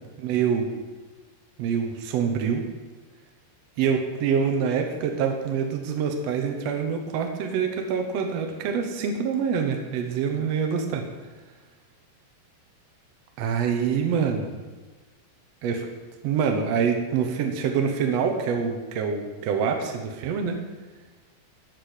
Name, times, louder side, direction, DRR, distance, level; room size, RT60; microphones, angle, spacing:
voice 1, 0.2-0.7 1.6-2.6 3.8-11.0 13.4-14.5 15.6-15.9 16.2-20.6, right 6 dB, 85° right, 4 dB, 1.4 m, -25 dB
12.5 x 4.4 x 8.2 m, 1.3 s
omnidirectional pair, 4.6 m